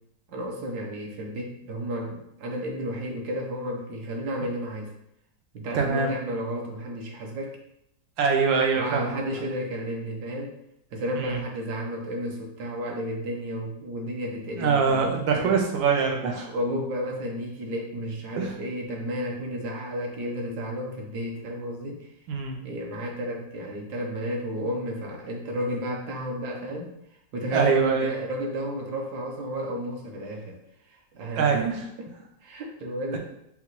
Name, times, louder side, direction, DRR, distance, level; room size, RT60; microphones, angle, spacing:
voice 1, 0.3-4.9 5.5-7.6 8.7-10.6 10.9-15.6 16.4-22.1 22.6-26.9 27.3-30.6 31.1-31.5 32.0-32.1 32.4-33.2, equal, 65° right, 0 dB, 1.2 m, -32 dB
voice 2, 5.7-6.1 8.2-9.2 11.2-11.4 14.6-16.5 18.4-18.5 22.3-22.6 27.5-28.1 31.4-31.9 33.1-33.2, right 5 dB, 90° right, 2 dB, 1.5 m, -24 dB
5.6 x 2.3 x 2.9 m, 0.79 s
omnidirectional pair, 2.0 m